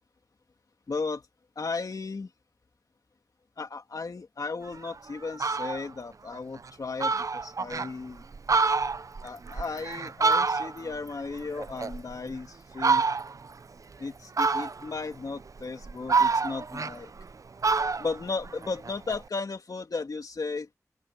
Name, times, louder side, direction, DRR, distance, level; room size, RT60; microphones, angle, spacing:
voice 1, 0.9-1.2 1.6-2.3 3.6-8.2 9.2-13.1 14.0-17.1 18.0-20.7, left 4 dB, 85° left, 2.8 m, -35 dB
Fowl, 4.8-4.9 5.2-5.8 6.3-6.4 6.7-6.8 7.0-7.9 8.3-11.0 11.3-12.3 12.8-13.5 14.4-15.0 15.6-17.3 17.6-19.2, right 4 dB, 65° right, 0.5 m, -27 dB
open air
wide cardioid pair, 70°, 6 cm